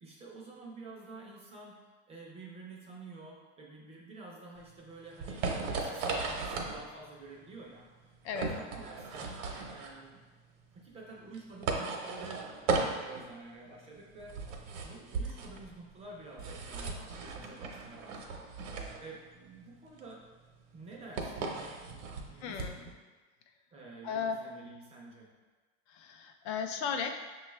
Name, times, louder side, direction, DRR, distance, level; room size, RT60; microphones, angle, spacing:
voice 1, 0.0-9.3 9.7-10.2 10.7-14.4 14.8-20.2 20.7-22.9 23.7-25.3, right 3 dB, 15° right, -3 dB, 0.4 m, -50 dB
sound 1, 4.6-22.9, right 4 dB, 65° right, 0.8 m, -37 dB
voice 2, 22.4-22.7 24.0-24.4 25.9-27.2, left 6 dB, 60° left, 5 dB, 0.5 m, -35 dB
5.7 x 2.3 x 3.1 m, 1.3 s
supercardioid pair, 140°, 38 cm